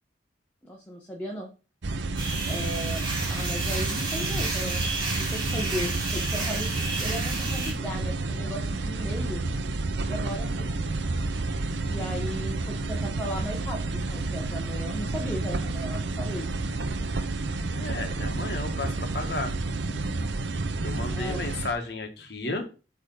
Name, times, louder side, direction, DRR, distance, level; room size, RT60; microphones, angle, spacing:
voice 1, 0.6-1.5 2.5-3.0 3.3-9.4 10.1-10.7 11.8-16.6 21.1-21.4, equal, 10° left, -2 dB, 1.2 m, -36 dB
sound 1, 1.8-21.7, right 2 dB, 70° right, 0.7 m, -30 dB
sound 2, 2.2-7.7, right 3 dB, 25° right, 2.2 m, -32 dB
voice 2, 17.8-19.5 20.8-22.7, left 2 dB, 55° left, 5 dB, 1.4 m, -33 dB
8.3 x 3.4 x 5.3 m, 0.33 s
head